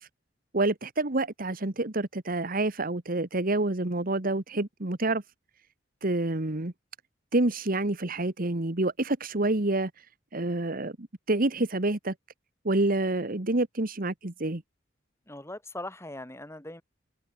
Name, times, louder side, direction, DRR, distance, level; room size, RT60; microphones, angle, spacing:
voice 1, 0.5-5.2 6.0-6.7 7.3-9.9 10.3-12.1 12.7-14.6, right 2 dB, 50° right, 1.6 m, -28 dB
voice 2, 15.3-16.8, left 1 dB, 15° left, 6.7 m, -40 dB
open air
head